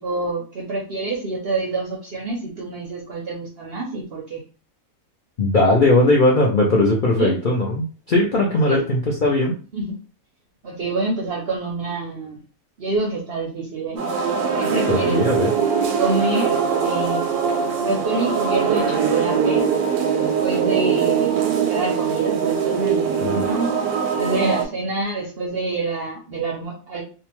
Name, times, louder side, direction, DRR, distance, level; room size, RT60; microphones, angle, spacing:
voice 1, 0.0-4.4 7.2-7.4 8.7-8.8 9.7-10.0 10.6-12.4 12.8-14.0 14.6-15.2 16.0-17.3 17.8-19.7 20.2-21.4 21.7-23.7 24.2-27.0, right 3 dB, 60° right, -1 dB, 0.6 m, -26 dB
voice 2, 5.4-9.5 14.9-15.5 23.2-23.6, left 2 dB, 65° left, -3 dB, 0.5 m, -19 dB
sound 1, 14.0-24.6, right 6 dB, 85° right, 1.1 m, -22 dB
2.8 x 2.2 x 2.9 m, 0.37 s
omnidirectional pair, 1.6 m